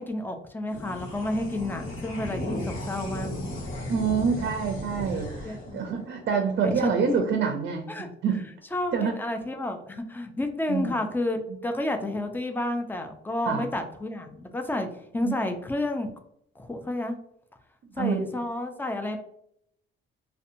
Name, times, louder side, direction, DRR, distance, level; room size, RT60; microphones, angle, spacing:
voice 1, 0.0-3.3 5.4-5.9 6.6-7.2 7.9-8.1 8.7-14.9 15.1-16.1 16.6-17.2 18.0-19.2, left 1 dB, 10° left, 5 dB, 0.4 m, -30 dB
sound 1, 0.7-7.4, left 1 dB, 85° left, 0.9 m, -36 dB
voice 2, 3.9-8.4 8.9-9.1 10.7-11.0 13.5-13.7 15.2-15.3 18.0-18.3, right 6 dB, 55° right, 4 dB, 0.4 m, -27 dB
2.7 x 2.1 x 2.6 m, 0.71 s
cardioid pair, 90°, 20 cm